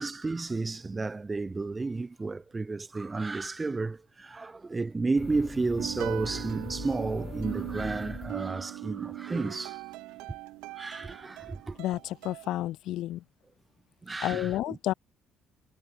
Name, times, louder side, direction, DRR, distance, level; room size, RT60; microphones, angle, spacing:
voice 1, 0.0-9.8 10.7-11.8 14.0-14.8, right 3 dB, 25° right, 0.9 m, -32 dB
sound 1, 5.2-8.9, left 5 dB, 30° left, 2.2 m, -42 dB
sound 2, 5.8-12.6, right 21 dB, 90° right, 1.3 m, -40 dB
voice 2, 11.8-13.2 14.2-14.9, left 14 dB, 75° left, 0.7 m, -31 dB
cardioid pair, 85°, 0 cm